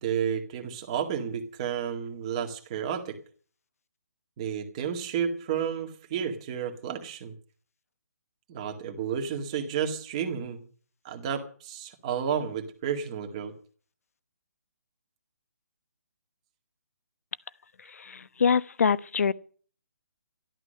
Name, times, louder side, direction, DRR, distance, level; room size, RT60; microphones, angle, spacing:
voice 1, 0.0-3.2 4.4-7.3 8.5-10.6 11.0-13.5, right 8 dB, 20° right, 2.0 m, -31 dB
voice 2, 17.9-19.3, left 6 dB, 60° left, 1.0 m, -25 dB
13.0 x 12.5 x 6.6 m
hypercardioid pair, 175°, 9 cm